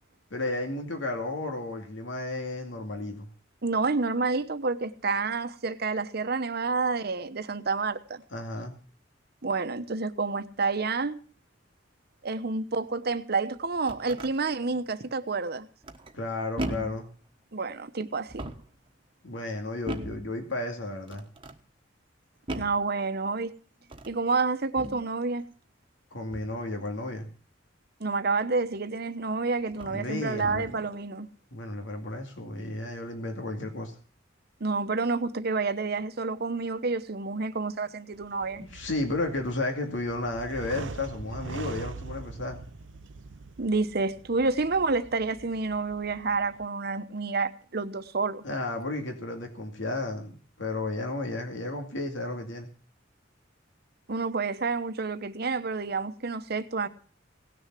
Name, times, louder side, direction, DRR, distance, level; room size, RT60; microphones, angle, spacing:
voice 1, 0.3-3.3 8.3-8.8 16.1-17.1 19.2-21.2 26.1-27.3 29.8-30.8 31.5-33.9 38.6-42.6 48.4-52.7, left 2 dB, 85° left, 2.3 m, -33 dB
voice 2, 3.6-8.2 9.4-11.2 12.2-15.7 17.5-18.5 22.5-23.5 24.1-25.5 28.0-31.3 34.6-38.6 43.6-48.4 54.1-56.9, right 4 dB, 55° right, 0.9 m, -29 dB
sound 1, 13.6-14.3 15.8-16.2 16.6-17.1 18.2-18.8 19.9-20.3 21.1-21.6 22.5-22.9 23.8-24.2 24.8-25.1 26.3-26.6 28.7-28.8 29.7-30.0 30.4-30.8, right 1 dB, 30° right, 1.2 m, -38 dB
sound 2, 38.1-46.6, right 4 dB, 75° right, 0.6 m, -43 dB
17.5 x 6.7 x 7.5 m
head